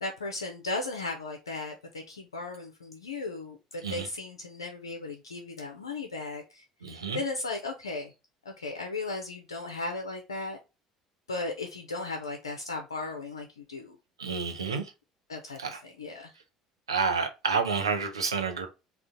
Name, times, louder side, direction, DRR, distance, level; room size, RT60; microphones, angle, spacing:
voice 1, 0.0-8.1 8.6-10.6 11.3-14.0 15.3-16.3, left 3 dB, 80° left, 0.5 m, -36 dB
voice 2, 6.8-7.2 14.2-14.8 15.6-15.8 16.9-18.7, right 5 dB, 80° right, 0.6 m, -29 dB
3.7 x 2.4 x 3.6 m
figure-of-eight pair, 60°, 2 cm